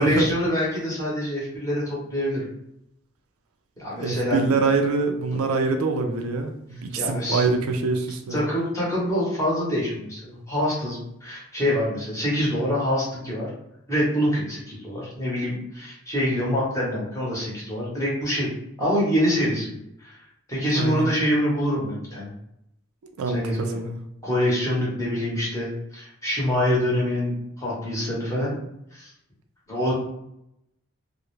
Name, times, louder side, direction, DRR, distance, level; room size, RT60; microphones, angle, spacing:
voice 1, 0.0-2.5 3.8-4.6 7.0-7.5 8.3-13.5 13.9-18.5 18.8-20.2 20.5-22.3 23.3-23.8 24.2-28.6 28.9-29.1 29.7-29.9, equal, 15° left, -5 dB, 0.8 m, -25 dB
voice 2, 3.9-8.4 20.7-21.1 23.2-24.0, right 4 dB, 90° right, 5 dB, 0.4 m, -24 dB
2.3 x 2.0 x 3.0 m, 0.81 s
head